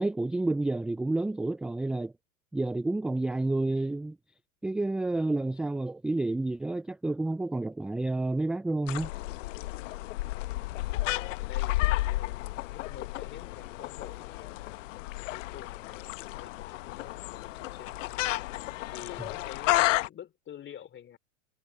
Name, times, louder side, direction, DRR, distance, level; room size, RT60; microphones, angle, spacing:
voice 1, 0.0-2.1 2.5-4.2 4.6-9.1, right 2 dB, ahead, 0.4 m, -29 dB
sound 1, 8.9-20.1, left 18 dB, 60° left, 1.2 m, -32 dB
voice 2, 10.6-14.8 15.3-18.4 18.9-21.2, left 10 dB, 25° left, 3.3 m, -48 dB
hypercardioid pair, 105°, 42 cm